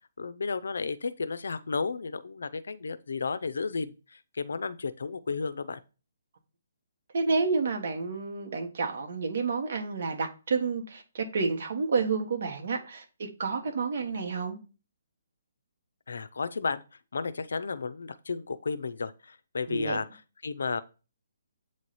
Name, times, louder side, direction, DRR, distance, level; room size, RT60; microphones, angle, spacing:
voice 1, 0.2-5.8 16.1-16.8 17.1-20.8, left 4 dB, 80° left, 0.6 m, -33 dB
voice 2, 7.1-14.6 19.7-20.0, right 4 dB, 50° right, 1.4 m, -30 dB
8.4 x 3.2 x 4.2 m
hypercardioid pair, 175°, 0 cm